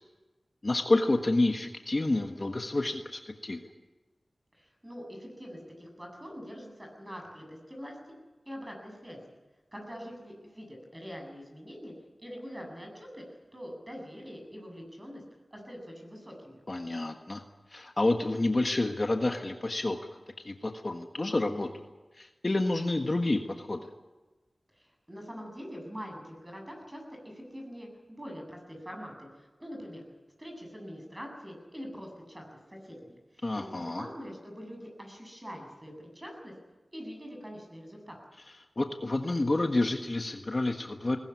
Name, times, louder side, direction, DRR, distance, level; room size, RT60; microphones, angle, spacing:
voice 1, 0.6-3.6 16.7-17.4 17.7-20.0 20.4-21.9 22.2-23.9 33.4-34.0 38.8-41.2, left 2 dB, 40° left, 4 dB, 1.5 m, -29 dB
voice 2, 4.5-8.0 8.5-9.2 9.7-11.9 12.2-15.2 15.5-16.6 24.8-30.0 30.4-36.5 36.9-38.2, equal, 20° right, 2 dB, 8.0 m, -44 dB
20.5 x 19.0 x 9.7 m, 1.2 s
wide cardioid pair, 80°, 0 cm